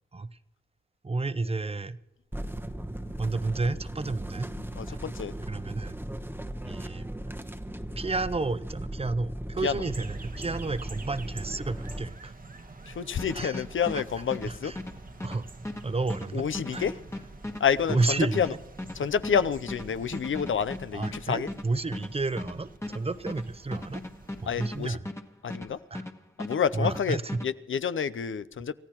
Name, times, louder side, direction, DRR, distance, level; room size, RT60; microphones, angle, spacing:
voice 1, 1.0-2.0 3.2-4.5 4.9-5.0 5.5-5.9 6.6-7.1 8.0-12.3 13.3-13.6 13.9-14.0 14.5-14.8 15.2-15.4 15.8-16.9 17.9-18.4 20.9-24.0 24.4-25.1 25.9-26.0 26.7-27.4, right 3 dB, 30° right, 0.6 m, -31 dB
sound 1, 2.3-12.1, right 1 dB, 10° right, 1.0 m, -37 dB
voice 2, 4.8-5.3 9.6-9.9 12.9-14.7 16.3-16.9 17.6-18.5 18.9-21.5 24.5-25.0 25.4-25.8 26.4-28.7, left 7 dB, 75° left, 0.6 m, -28 dB
sound 2, 9.8-25.0, right 3 dB, 45° right, 1.2 m, -47 dB
sound 3, 13.2-26.1 26.4-27.5, left 1 dB, 15° left, 1.3 m, -38 dB
28.5 x 14.5 x 3.0 m
cardioid pair, 55°, 21 cm